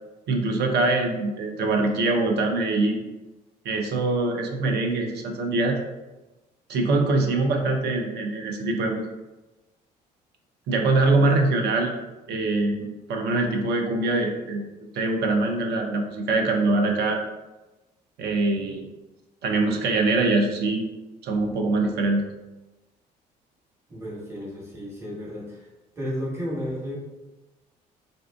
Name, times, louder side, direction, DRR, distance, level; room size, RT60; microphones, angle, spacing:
voice 1, 0.3-3.0 3.6-5.8 6.7-9.0 10.7-11.9 12.3-14.6 14.9-17.2 18.2-18.9 19.4-20.8 21.2-22.2, right 2 dB, 55° right, 2 dB, 0.5 m, -23 dB
voice 2, 23.9-25.7 26.0-27.0, equal, 15° right, -6 dB, 1.2 m, -33 dB
2.5 x 2.4 x 2.2 m, 1.1 s
hypercardioid pair, 55°, 21 cm